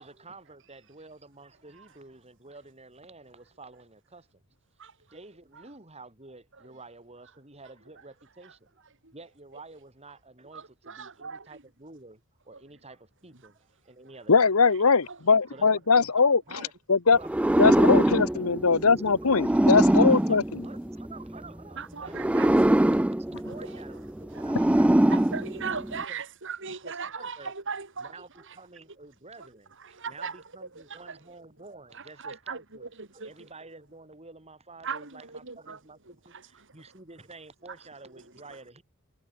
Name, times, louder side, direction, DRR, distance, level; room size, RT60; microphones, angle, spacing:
voice 1, 0.0-4.4 5.1-8.8 9.1-14.6 15.5-16.7 17.2-17.6 18.0-18.2 20.1-23.0 23.5-25.1 26.1-26.2 26.6-27.5 28.0-38.8, right 3 dB, 30° right, 6.2 m, -50 dB
voice 2, 10.5-11.6 21.8-22.8 24.6-24.7 25.1-28.1 29.8-30.4 32.2-33.3 34.8-35.8 36.3-36.4, right 5 dB, 60° right, 3.3 m, -37 dB
voice 3, 14.3-16.4 16.9-17.2 17.6-20.6, left 4 dB, 75° left, 1.1 m, -21 dB
sound 1, 17.2-21.4 22.1-26.0, right 1 dB, 5° right, 0.3 m, -23 dB
head